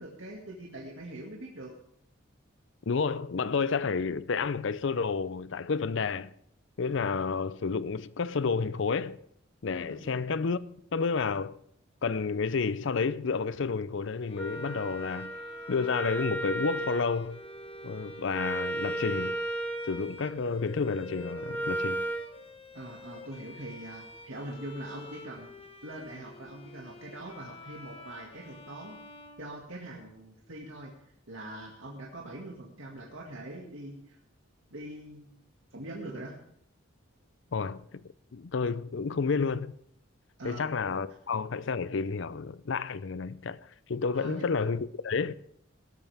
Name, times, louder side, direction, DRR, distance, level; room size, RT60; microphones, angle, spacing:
voice 1, 0.0-1.7 9.9-10.2 22.7-25.5 25.8-29.0 29.4-30.9 31.3-34.2 34.7-35.4 35.7-36.3 40.4-40.7 44.1-44.5, right 1 dB, 70° right, 2.2 m, -43 dB
voice 2, 2.9-6.3 6.8-9.2 9.6-10.6 10.9-11.6 12.0-15.3 15.7-17.4 17.8-19.4 19.9-22.1 37.5-38.0 38.3-39.7 40.4-43.6 43.9-45.3, left 5 dB, 65° left, 0.5 m, -30 dB
Bowed string instrument, 14.3-30.1, left 2 dB, 30° left, 1.6 m, -49 dB
Wind instrument woodwind instrument, 14.3-22.3, right 2 dB, 10° left, 1.2 m, -35 dB
17.5 x 13.0 x 3.5 m
head